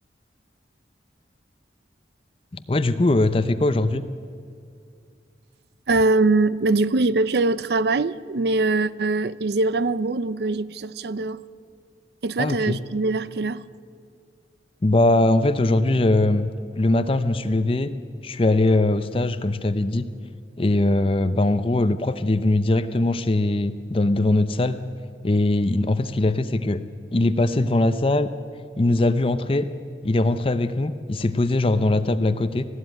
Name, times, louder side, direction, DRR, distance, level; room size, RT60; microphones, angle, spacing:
voice 1, 2.5-4.0 12.4-12.8 14.8-16.5 16.8-17.9 18.2-20.0 20.6-24.8 25.2-26.8 27.1-28.3 28.8-29.7 30.0-32.7, left 2 dB, 30° left, 0.6 m, -21 dB
voice 2, 5.9-11.4 12.2-13.6, right 3 dB, 60° right, 0.5 m, -22 dB
20.0 x 14.5 x 9.2 m
head